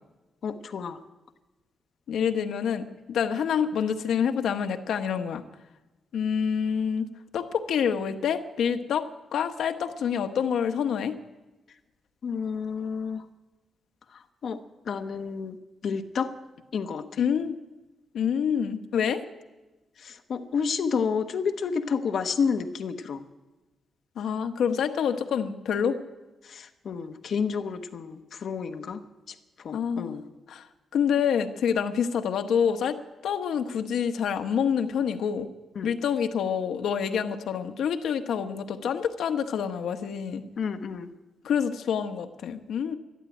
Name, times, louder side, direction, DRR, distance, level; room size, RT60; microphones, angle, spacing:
voice 1, 0.4-1.0 12.2-13.2 14.4-14.6 14.9-15.6 15.8-16.3 16.7-17.0 20.0-23.2 26.5-29.0 29.6-30.2 35.8-35.9 40.6-41.1, left 6 dB, 50° left, 7 dB, 0.9 m, -30 dB
voice 2, 2.1-5.4 6.1-7.1 7.3-11.1 17.2-17.6 18.1-19.2 24.2-26.0 29.7-30.2 30.5-30.7 30.9-33.0 33.2-35.5 35.8-40.4 41.4-43.0, left 7 dB, 80° left, 8 dB, 1.0 m, -27 dB
12.5 x 12.5 x 9.0 m, 1.1 s
wide cardioid pair, 175°, 0 cm